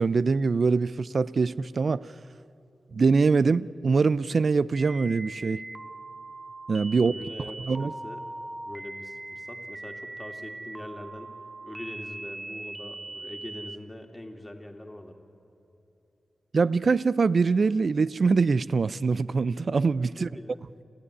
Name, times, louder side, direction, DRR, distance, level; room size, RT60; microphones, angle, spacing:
voice 1, 0.0-2.1 2.9-5.6 6.7-7.1 7.7-7.9 16.5-20.3, right 4 dB, 60° right, 0.5 m, -23 dB
sound 1, 4.8-13.8, right 2 dB, 20° right, 0.8 m, -40 dB
voice 2, 6.9-8.3 8.6-11.3 11.6-15.2 20.2-20.6, left 1 dB, 10° left, 2.7 m, -43 dB
28.0 x 15.5 x 10.0 m
wide cardioid pair, 75°, 0 cm